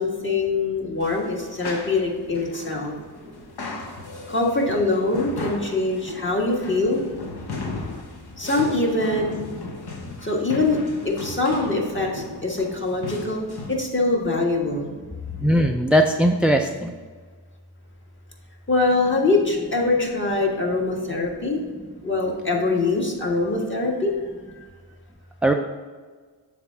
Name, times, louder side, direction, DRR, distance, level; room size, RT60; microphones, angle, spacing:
voice 1, 0.0-2.9 4.3-7.0 8.4-9.5 10.2-10.8 11.0-14.9 18.7-21.6 22.0-24.1, left 3 dB, 25° left, 0 dB, 1.6 m, -23 dB
sound 1, 1.0-13.8, left 3 dB, 60° left, 1.2 m, -36 dB
voice 2, 15.4-16.9 25.4-25.5, equal, 5° right, 3 dB, 0.3 m, -19 dB
7.2 x 3.6 x 5.7 m, 1.5 s
cardioid pair, 65°, 44 cm